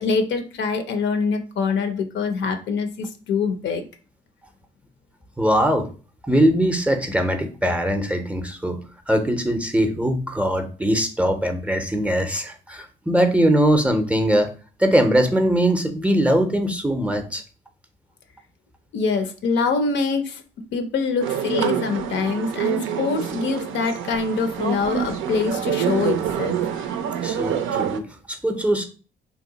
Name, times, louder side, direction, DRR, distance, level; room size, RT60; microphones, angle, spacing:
voice 1, 0.0-3.8 18.9-20.4 20.7-26.6, left 4 dB, 65° left, 8 dB, 0.5 m, -24 dB
voice 2, 5.4-5.9 6.3-8.8 9.1-14.5 14.8-17.4 27.2-28.9, equal, 5° right, 5 dB, 0.5 m, -21 dB
sound 1, 21.2-28.0, right 9 dB, 85° right, 0.4 m, -26 dB
2.8 x 2.1 x 3.8 m, 0.36 s
cardioid pair, 90°, 20 cm